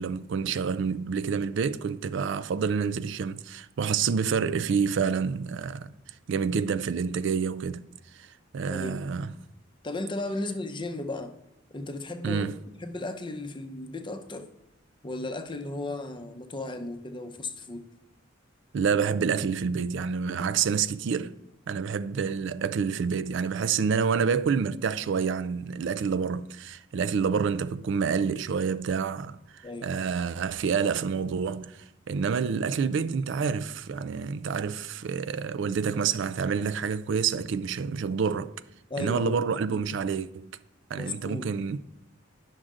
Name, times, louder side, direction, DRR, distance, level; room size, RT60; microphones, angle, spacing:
voice 1, 0.0-5.9 6.3-7.8 8.1-8.3 8.5-9.3 12.2-12.6 18.7-21.4 21.7-38.5 39.0-40.5 40.9-41.8, right 6 dB, 65° right, 0.4 m, -28 dB
voice 2, 8.7-9.0 9.8-11.3 11.7-12.5 12.8-14.5 15.0-17.9 29.6-29.9 38.9-39.4 39.7-39.8 40.9-41.5, left 2 dB, 25° left, 0.7 m, -35 dB
10.0 x 6.3 x 3.7 m
head